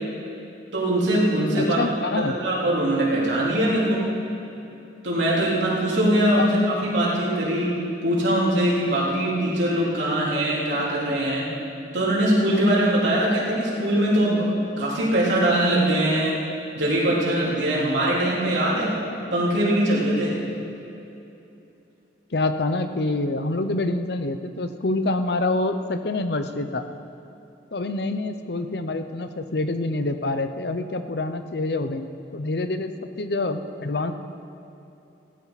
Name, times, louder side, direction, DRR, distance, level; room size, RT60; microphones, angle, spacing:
voice 1, 0.7-1.8 2.2-4.1 5.0-7.8 8.0-11.5 11.9-14.5 14.8-16.4 16.7-19.0 19.3-20.4, right 1 dB, 85° right, -6 dB, 3.7 m, -22 dB
voice 2, 1.6-2.3 6.4-6.5 22.3-26.8 27.7-32.1 32.3-32.9 33.2-34.1, left 2 dB, 65° left, 9 dB, 0.7 m, -26 dB
16.5 x 14.5 x 4.1 m, 2.8 s
head